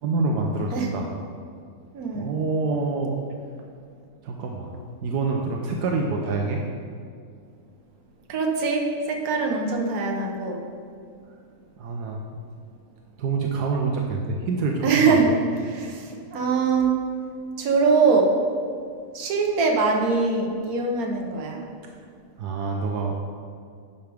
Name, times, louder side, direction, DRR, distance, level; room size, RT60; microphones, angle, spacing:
voice 1, 0.0-1.2 2.1-3.2 4.2-4.7 5.0-6.6 11.8-12.2 13.2-15.4 22.4-23.2, right 3 dB, 85° right, 1 dB, 1.3 m, -26 dB
voice 2, 1.9-2.3 8.3-10.6 14.8-15.3 15.7-17.0 17.6-18.3 19.1-21.6, right 4 dB, 65° right, 1 dB, 1.4 m, -22 dB
10.5 x 5.6 x 3.5 m, 2.3 s
omnidirectional pair, 1.7 m